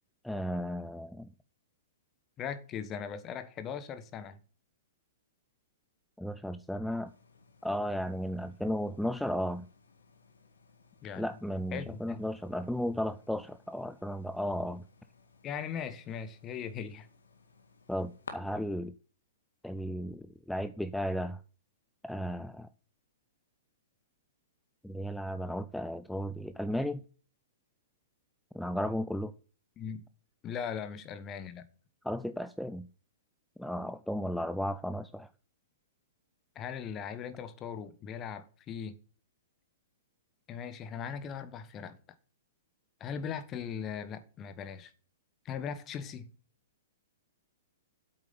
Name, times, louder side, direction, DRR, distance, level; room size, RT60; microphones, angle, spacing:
voice 1, 0.2-1.3 6.2-7.1 7.6-9.7 11.2-14.8 17.9-18.9 19.6-21.4 22.0-22.7 24.8-27.0 28.5-29.3 32.0-32.9 33.6-35.3, equal, ahead, 0.5 m, -34 dB
voice 2, 2.4-4.4 11.0-11.3 11.7-12.2 15.4-17.1 29.8-30.1 30.4-31.7 36.5-39.0 40.5-42.0 43.0-44.9 45.4-46.3, left 7 dB, 25° left, 1.2 m, -39 dB
sound 1, 7.0-18.3, left 4 dB, 70° left, 2.0 m, -57 dB
8.5 x 7.8 x 7.0 m
figure-of-eight pair, 110°, 0 cm